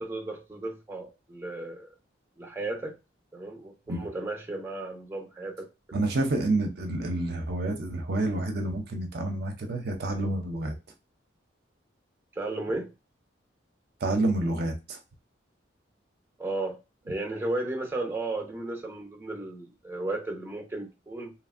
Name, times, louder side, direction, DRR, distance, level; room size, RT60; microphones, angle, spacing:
voice 1, 0.0-1.9 2.4-2.9 3.3-6.0 12.4-12.9 16.4-16.8 17.1-21.3, right 2 dB, 10° right, 0.6 m, -34 dB
voice 2, 5.9-10.7 14.0-15.0, right 2 dB, 60° right, 0.5 m, -28 dB
2.9 x 2.5 x 2.4 m
head